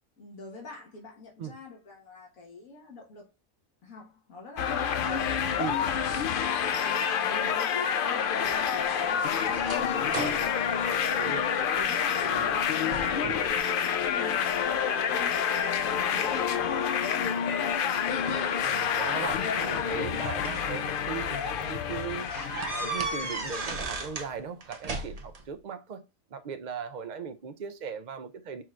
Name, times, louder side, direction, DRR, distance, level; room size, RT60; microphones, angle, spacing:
voice 1, 0.2-3.3 3.8-6.1 6.6-11.4 11.7-15.4 15.7-18.2, left 3 dB, 90° left, 1.7 m, -45 dB
sound 1, 4.6-23.7, left 7 dB, 70° left, 0.5 m, -28 dB
sound 2, 8.4-11.8 12.3-12.6 12.9-13.6 14.0-14.7 15.3-16.8 17.9-18.1 19.3-20.7 21.2-21.4 21.7-21.8 22.3-24.3 24.6-25.4, right 3 dB, 35° right, 0.8 m, -37 dB
voice 2, 11.2-11.5 18.6-22.3 22.7-26.0 26.3-28.6, right 6 dB, 80° right, 0.4 m, -38 dB
4.6 x 4.4 x 2.3 m
omnidirectional pair, 1.4 m